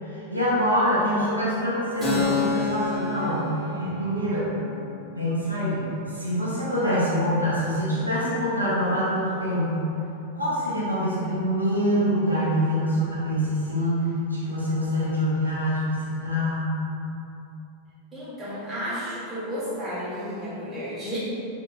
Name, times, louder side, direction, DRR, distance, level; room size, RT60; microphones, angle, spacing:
voice 1, 0.0-4.5 5.2-9.9 10.3-16.8, equal, 85° right, -9 dB, 0.7 m, -25 dB
Keyboard (musical), 2.0-9.3, left 4 dB, 5° left, 1.0 m, -33 dB
voice 2, 2.1-3.5 18.1-21.2, equal, 15° right, -11 dB, 1.4 m, -33 dB
3.7 x 2.7 x 2.4 m, 2.8 s
figure-of-eight pair, 90°, 0 cm